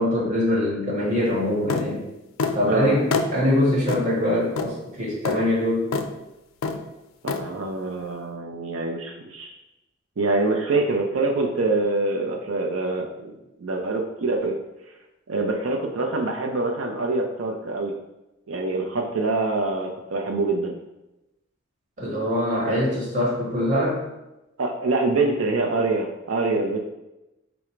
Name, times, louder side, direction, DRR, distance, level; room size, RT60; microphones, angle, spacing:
voice 1, 0.0-2.0 2.5-5.9 22.0-24.0, left 1 dB, 40° right, -4 dB, 1.3 m, -23 dB
sound 1, 1.7-1.9 2.4-2.6 3.1-3.3 3.9-4.0 4.6-4.7 5.2-5.4 5.9-6.1 6.6-6.8 7.3-7.4, left 4 dB, 75° left, 0.4 m, -25 dB
voice 2, 2.7-3.0 7.2-9.5 10.2-13.3 13.6-14.5 15.3-17.9 18.5-20.7 24.6-26.8, right 3 dB, 75° right, 0 dB, 0.5 m, -25 dB
4.8 x 2.0 x 4.3 m, 0.96 s
head